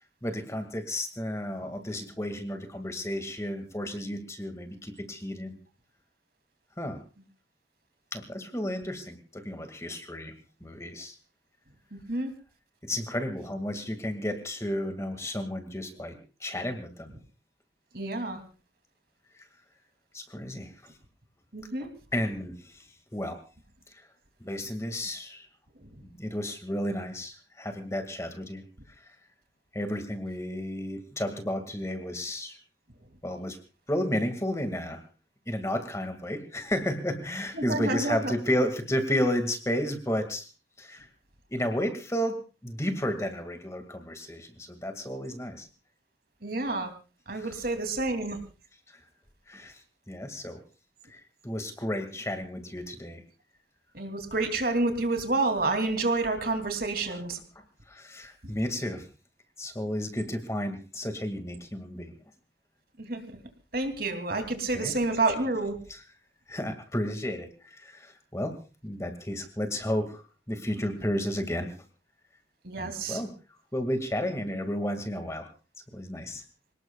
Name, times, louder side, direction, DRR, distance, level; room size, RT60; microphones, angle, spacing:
voice 1, 0.2-5.6 6.8-7.0 8.1-10.3 10.6-11.2 12.8-17.1 19.4-19.5 20.1-20.9 22.1-22.9 23.1-23.4 23.9-24.1 24.4-25.5 26.0-28.6 29.0-29.2 29.7-32.6 33.2-33.6 33.9-35.0 35.5-40.5 40.8-41.1 41.5-42.4 42.6-45.7 47.4-47.6 48.9-49.0 49.5-49.8 50.1-50.6 51.1-53.2 57.1-57.2 57.9-59.1 59.6-62.1 64.7-64.9 65.9-66.0 66.5-68.6 68.8-71.7 72.8-73.3 73.7-75.5 75.9-76.4, equal, 15° left, 6 dB, 2.1 m, -32 dB
voice 2, 17.9-18.4 21.5-21.9 37.5-38.3 46.4-46.9 47.3-48.4 53.9-57.4 63.0-63.2 63.7-65.7 72.6-73.2, right 2 dB, 55° right, 6 dB, 2.9 m, -29 dB
27.0 x 19.0 x 2.4 m, 0.33 s
head